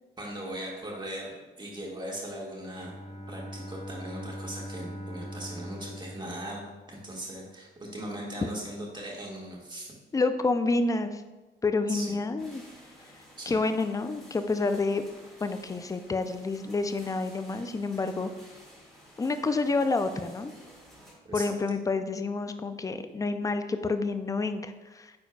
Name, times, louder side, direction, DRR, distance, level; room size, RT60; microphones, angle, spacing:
voice 1, 0.2-1.3 1.6-2.9 3.3-9.9 11.9-12.2 13.4-13.6 21.3-21.4, right 1 dB, 25° right, -3 dB, 1.8 m, -39 dB
Bowed string instrument, 2.6-7.4, equal, 35° left, 1.0 m, -42 dB
voice 2, 10.1-11.2 11.6-12.6 13.5-15.0 15.4-18.3 19.2-20.5 21.3-25.1, left 3 dB, 15° left, 9 dB, 0.4 m, -28 dB
sound 1, 12.4-21.1, equal, ahead, 2.0 m, -53 dB
9.5 x 4.4 x 2.3 m, 1.2 s
cardioid pair, 90°, 20 cm